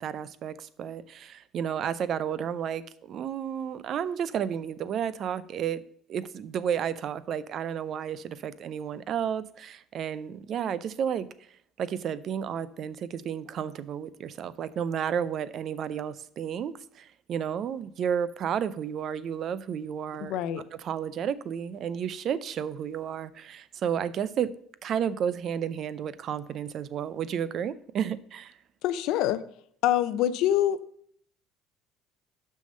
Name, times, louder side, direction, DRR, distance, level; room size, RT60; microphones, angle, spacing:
voice 1, 0.0-5.8 6.1-11.3 11.8-20.4 20.8-24.5 24.8-28.5, right 8 dB, 50° right, 0.5 m, -32 dB
voice 2, 20.3-20.6 28.8-29.4 29.8-30.8, left 12 dB, 70° left, 0.5 m, -25 dB
6.2 x 5.6 x 6.5 m
supercardioid pair, 100°, 0 cm